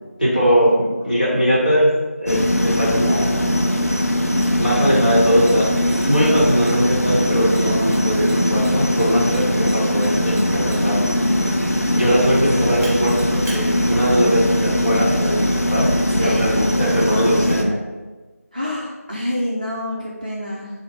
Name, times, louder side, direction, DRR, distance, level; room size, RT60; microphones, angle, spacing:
voice 1, 0.2-1.9 2.2-3.6 4.6-5.7 6.0-11.0 11.9-15.9 16.2-17.8, equal, 35° left, -7 dB, 1.0 m, -20 dB
sound 1, 2.3-17.6, equal, 70° left, 0.5 m, -20 dB
Mechanisms, 4.4-4.5 5.4-7.0 7.5-11.0 12.8-13.6, right 1 dB, 15° right, 1.4 m, -40 dB
voice 2, 16.1-16.5 18.5-20.7, left 1 dB, 30° right, -6 dB, 0.5 m, -27 dB
4.5 x 2.0 x 3.3 m, 1.2 s
figure-of-eight pair, 180°, 8 cm